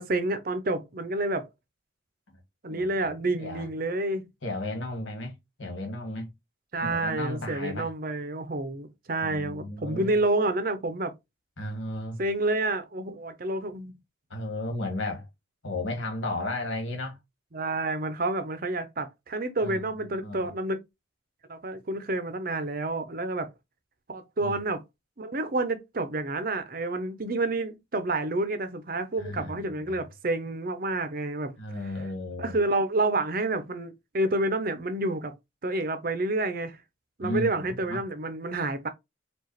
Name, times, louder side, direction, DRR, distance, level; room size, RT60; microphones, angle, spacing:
voice 1, 0.0-1.5 2.6-4.3 6.7-11.1 12.2-13.9 17.5-20.8 21.5-23.5 24.1-24.8 25.2-31.5 32.4-35.3 35.6-36.8 37.2-38.9, right 2 dB, 45° right, 0.6 m, -29 dB
voice 2, 2.7-3.7 4.4-6.3 6.8-7.9 9.2-10.2 11.6-12.2 14.3-15.3 15.6-17.2 19.6-19.9 20.2-20.5 24.4-24.5 29.2-30.0 31.6-32.6 37.2-38.0, left 1 dB, 75° left, 1.6 m, -34 dB
4.7 x 2.4 x 2.9 m
head